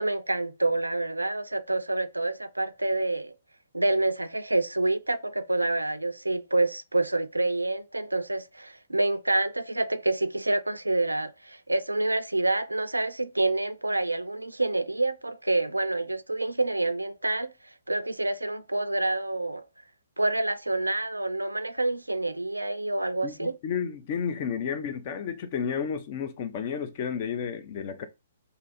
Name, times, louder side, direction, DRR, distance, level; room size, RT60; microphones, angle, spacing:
voice 1, 0.0-3.3 3.7-17.5 17.9-19.7 20.2-23.6, right 2 dB, 85° right, 0.3 m, -27 dB
voice 2, 23.2-28.0, left 7 dB, 40° left, 0.5 m, -32 dB
2.7 x 2.4 x 4.0 m
figure-of-eight pair, 120°, 0 cm